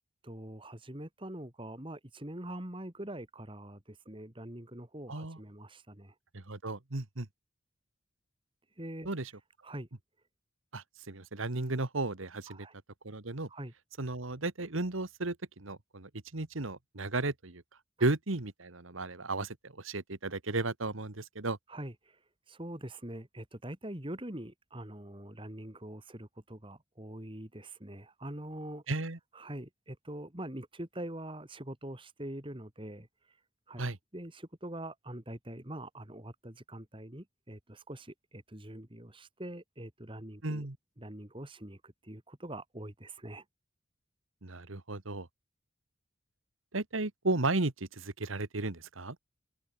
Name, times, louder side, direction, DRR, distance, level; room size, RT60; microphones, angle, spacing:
voice 1, 0.2-6.1 8.8-9.1 9.6-9.9 12.5-12.7 13.5-13.7 21.7-22.2 22.5-28.8 29.3-33.1 33.7-33.9 34.1-40.7 41.0-43.4, right 1 dB, 25° right, 2.4 m, -44 dB
voice 2, 5.1-5.4 6.3-7.3 9.1-9.3 10.7-12.7 13.0-13.5 14.0-17.6 18.0-21.6 28.9-29.2 33.8-34.0 40.4-40.8 44.4-45.3 46.7-49.2, right 2 dB, 75° right, 1.7 m, -34 dB
open air
head